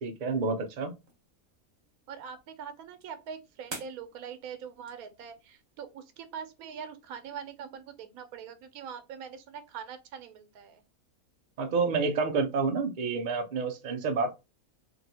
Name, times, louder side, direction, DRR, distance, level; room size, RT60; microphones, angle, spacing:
voice 1, 0.0-0.9 11.6-14.3, right 4 dB, 65° right, 0.4 m, -29 dB
sound 1, 0.8-5.9, right 3 dB, 35° right, 1.0 m, -50 dB
voice 2, 2.1-10.8, right 7 dB, 85° right, 1.0 m, -43 dB
3.0 x 2.7 x 2.7 m
omnidirectional pair, 1.5 m